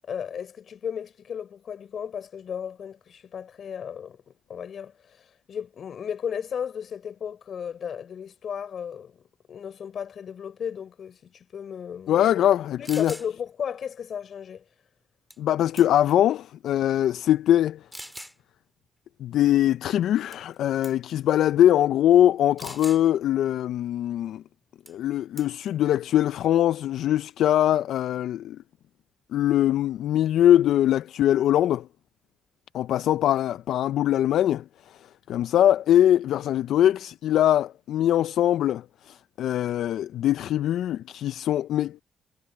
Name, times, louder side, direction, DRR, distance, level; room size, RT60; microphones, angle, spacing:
voice 1, 0.1-12.2 12.8-14.6, left 8 dB, 60° left, 4.7 m, -35 dB
voice 2, 12.1-13.1 15.4-17.8 19.2-24.4 24.9-28.6 29.3-31.9 32.7-42.0, left 11 dB, 80° left, 0.4 m, -22 dB
sound 1, 12.5-12.6 12.8-13.3 15.3-15.5 15.8-16.2 16.9-17.0 17.9-18.4 20.3-20.6 20.8-21.1 22.6-23.0 24.9-25.1 25.4-25.7, equal, 5° right, 1.9 m, -41 dB
cardioid pair, 75°, 0 cm